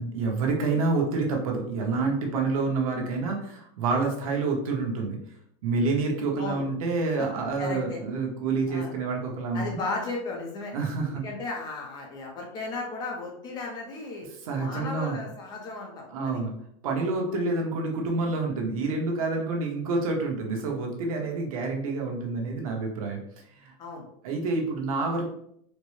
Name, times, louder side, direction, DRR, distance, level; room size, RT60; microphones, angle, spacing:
voice 1, 0.0-5.2 5.6-9.9 10.7-11.2 14.4-15.2 16.1-16.5 16.8-23.2 23.5-23.7 24.2-25.3, right 3 dB, 85° right, 0 dB, 1.1 m, -28 dB
voice 2, 7.6-8.0 8.7-8.9 9.5-10.7 11.1-14.3 14.6-16.4 17.3-17.4 23.8-24.1, left 3 dB, 25° left, 1 dB, 0.6 m, -35 dB
4.3 x 2.1 x 3.1 m, 0.71 s
supercardioid pair, 170°, 17 cm